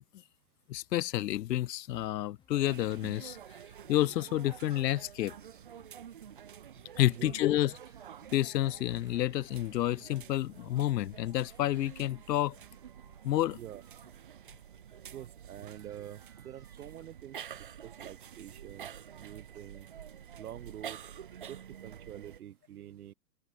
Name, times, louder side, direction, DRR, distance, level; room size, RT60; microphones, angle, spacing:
voice 1, 0.7-3.4 3.9-5.3 7.0-7.7 8.3-12.6 13.2-13.6, left 14 dB, 80° left, 0.6 m, -29 dB
sound 1, 1.9-14.8, left 8 dB, 10° left, 5.8 m, -71 dB
sound 2, 2.5-22.4, right 9 dB, 35° right, 0.7 m, -49 dB
voice 2, 7.1-7.5 13.5-13.8 15.1-18.9 19.2-19.9 20.4-21.0 21.5-23.1, right 11 dB, 65° right, 0.8 m, -47 dB
sound 3, 7.5-14.1 14.4-17.6, right 6 dB, 5° right, 5.3 m, -68 dB
open air
hypercardioid pair, 175°, 48 cm